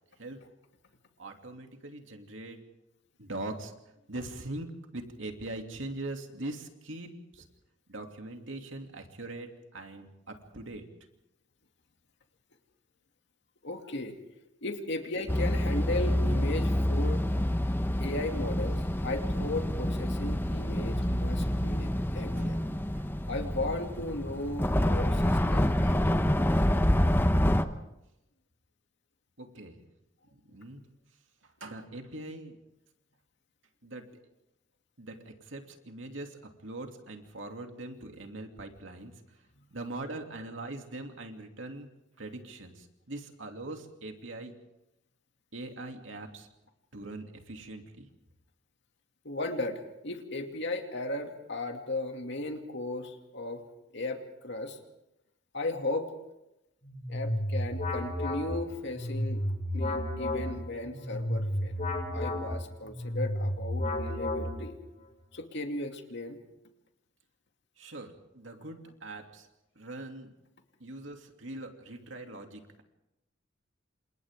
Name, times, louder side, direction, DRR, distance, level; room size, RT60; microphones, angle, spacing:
voice 1, 1.2-2.6 3.2-3.7 4.1-7.4 7.9-10.9 22.3-22.5 22.9-23.1 29.4-29.8 30.3-30.8 31.4-32.6 33.8-34.1 35.0-39.1 39.7-41.9 42.2-44.5 45.5-46.5 46.9-48.1 67.8-69.5 69.8-70.3 70.8-72.8, right 2 dB, 75° right, 3 dB, 2.8 m, -42 dB
voice 2, 13.6-14.2 14.6-17.3 18.0-22.6 23.3-26.4 39.5-39.8 49.2-53.6 53.9-54.8 55.5-56.1 57.1-59.4 59.7-61.8 62.1-64.8 65.3-66.4, left 2 dB, 65° left, 4 dB, 2.5 m, -36 dB
sound 1, 15.3-27.6, left 1 dB, 10° left, 0.9 m, -27 dB
sound 2, 56.8-64.9, left 1 dB, 40° left, 6.2 m, -32 dB
29.0 x 27.5 x 3.7 m, 0.89 s
head